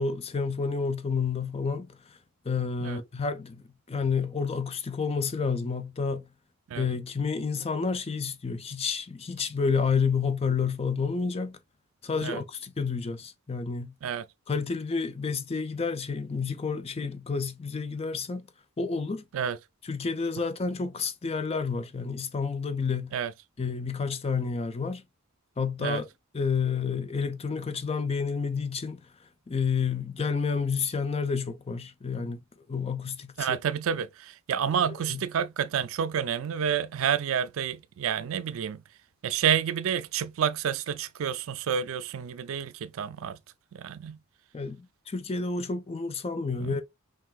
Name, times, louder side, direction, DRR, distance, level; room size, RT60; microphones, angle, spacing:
voice 1, 0.0-1.9 2.5-3.6 3.9-6.2 6.8-11.6 12.0-13.9 14.5-18.4 18.8-19.2 19.8-23.1 23.6-25.0 25.6-26.1 26.3-29.0 29.5-32.4 32.7-33.6 35.1-35.2 44.5-46.8, left 5 dB, 25° left, 0.4 m, -30 dB
voice 2, 33.4-38.8 39.2-43.4 43.7-44.2 46.6-46.7, right 8 dB, 65° right, 0.4 m, -29 dB
5.7 x 2.6 x 2.3 m
head